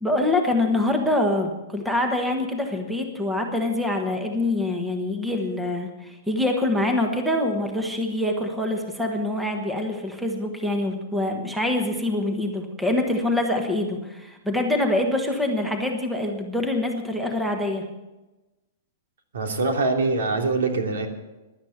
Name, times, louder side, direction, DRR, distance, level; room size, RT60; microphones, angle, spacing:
voice 1, 0.0-17.8, left 1 dB, 5° right, 3 dB, 1.2 m, -25 dB
voice 2, 19.3-21.1, right 3 dB, 85° right, 3 dB, 3.1 m, -23 dB
16.5 x 11.5 x 5.8 m, 1.1 s
hypercardioid pair, 175°, 0 cm